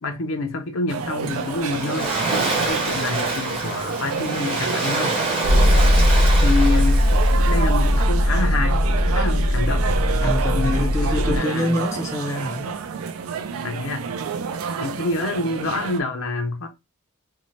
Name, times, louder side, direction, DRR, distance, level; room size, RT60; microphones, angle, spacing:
voice 1, 0.0-2.1 2.6-5.1 5.6-5.9 6.4-9.9 10.5-11.8 13.6-14.0 14.8-16.7, left 3 dB, 65° left, 0.6 m, -27 dB
sound 1, 0.9-16.0, right 6 dB, 70° right, 0.3 m, -29 dB
Waves surf, 1.2-8.0, right 3 dB, 25° right, 0.8 m, -27 dB
sound 2, 5.4-11.4, left 1 dB, 80° left, 0.9 m, -18 dB
voice 2, 10.2-12.7, left 1 dB, 15° left, 0.5 m, -26 dB
2.6 x 2.1 x 3.0 m
head